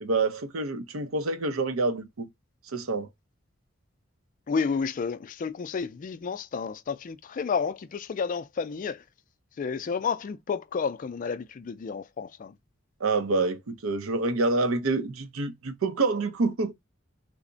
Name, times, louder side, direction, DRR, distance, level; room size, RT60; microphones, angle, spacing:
voice 1, 0.0-2.3 2.7-3.1 13.0-16.7, right 3 dB, 90° right, 0.6 m, -27 dB
voice 2, 4.5-9.0 9.6-12.5, left 5 dB, 40° left, 0.3 m, -31 dB
3.4 x 2.1 x 3.8 m
head